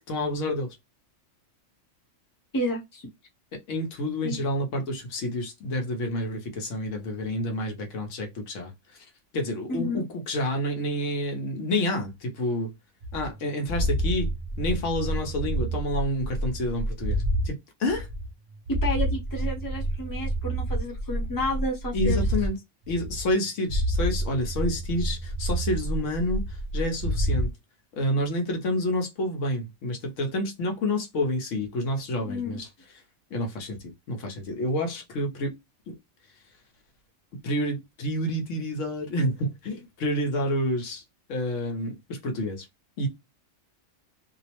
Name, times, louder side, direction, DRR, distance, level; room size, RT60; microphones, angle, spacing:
voice 1, 0.1-0.8 3.5-9.0 9.3-12.7 13.1-14.3 14.6-18.1 21.9-22.6 22.9-27.5 28.0-32.7 33.3-35.5 35.9-36.0 37.4-41.0 41.3-42.7 43.0-43.1, left 1 dB, 70° left, 1.2 m, -29 dB
voice 2, 2.5-3.1 4.2-4.4 9.7-10.0 18.7-22.2 32.2-32.6, left 1 dB, 20° left, 0.7 m, -31 dB
sound 1, 13.0-17.5 17.8-22.5 22.9-23.4 23.7-27.5, right 1 dB, 50° right, 0.5 m, -29 dB
2.8 x 2.0 x 2.8 m
omnidirectional pair, 1.3 m